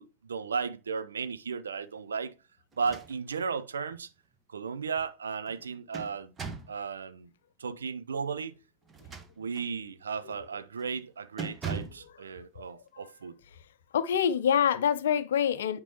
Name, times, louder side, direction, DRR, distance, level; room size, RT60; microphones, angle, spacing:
voice 1, 0.0-2.3 2.8-4.1 4.5-6.3 6.7-7.3 7.6-8.5 9.4-13.3, right 5 dB, 70° right, 0.5 m, -35 dB
sound 1, 2.7-3.5 3.9-4.0 5.5-6.8 8.8-9.7 10.2-10.5 10.8-11.0 11.4-12.1, right 5 dB, 20° right, 1.3 m, -40 dB
voice 2, 13.9-15.8, left 8 dB, 60° left, 0.6 m, -26 dB
9.0 x 5.3 x 3.0 m
figure-of-eight pair, 90°, 0 cm